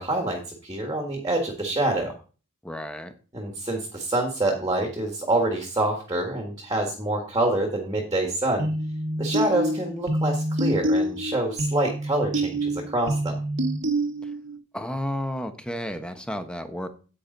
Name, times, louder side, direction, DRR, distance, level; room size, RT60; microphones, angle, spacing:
voice 1, 0.0-2.1 3.3-8.7 9.2-13.4, right 2 dB, 20° right, 3 dB, 1.7 m, -26 dB
voice 2, 2.6-3.1 14.2-14.3 14.7-16.9, equal, 5° left, 8 dB, 1.0 m, -32 dB
sound 1, 8.6-14.6, right 1 dB, 60° right, 1.3 m, -27 dB
9.8 x 8.7 x 3.9 m, 0.35 s
head